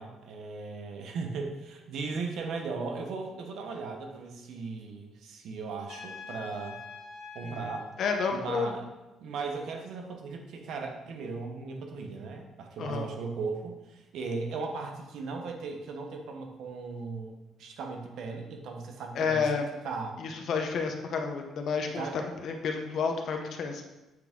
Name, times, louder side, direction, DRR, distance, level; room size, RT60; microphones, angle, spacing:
voice 1, 0.0-6.8 7.3-7.9 8.3-8.9 9.2-20.2 21.9-22.2, right 4 dB, 70° right, 3 dB, 1.0 m, -37 dB
Trumpet, 5.9-7.9, left 5 dB, 80° left, 1.6 m, -44 dB
voice 2, 8.0-8.7 12.8-13.1 19.1-19.7 20.2-23.8, left 5 dB, 55° left, 4 dB, 0.8 m, -30 dB
7.8 x 3.5 x 3.6 m, 1.0 s
cardioid pair, 120°, 0 cm